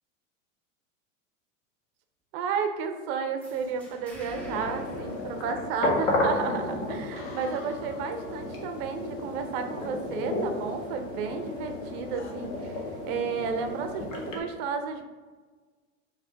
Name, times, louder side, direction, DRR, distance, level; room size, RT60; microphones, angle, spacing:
voice 1, 2.3-15.0, right 6 dB, 45° right, 6 dB, 0.6 m, -32 dB
sound 1, 3.4-6.1, equal, 5° left, 1.0 m, -49 dB
sound 2, 4.3-14.4, left 2 dB, 70° left, 1.1 m, -33 dB
sound 3, 7.1-8.7 10.6-11.8 12.1-12.3, left 3 dB, 30° left, 0.9 m, -49 dB
5.0 x 2.6 x 3.3 m, 1.4 s
figure-of-eight pair, 90°, 40 cm